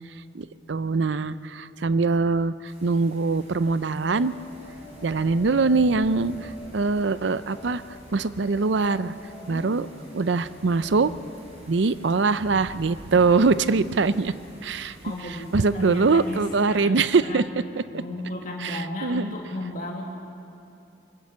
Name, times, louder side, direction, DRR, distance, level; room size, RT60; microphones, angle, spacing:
voice 1, 0.3-4.3 5.0-7.8 8.1-9.1 9.5-9.9 10.1-11.1 11.7-14.3 14.6-15.0 15.5-17.4 18.6-19.3, right 4 dB, 70° right, 15 dB, 0.6 m, -23 dB
sound 1, 2.6-16.6, equal, 35° right, 5.9 m, -48 dB
sound 2, 4.0-17.9, left 1 dB, 25° left, 2.9 m, -49 dB
voice 2, 9.4-10.3 15.0-17.5 17.9-20.0, left 1 dB, 45° left, -1 dB, 1.7 m, -35 dB
23.5 x 14.0 x 8.4 m, 2.7 s
head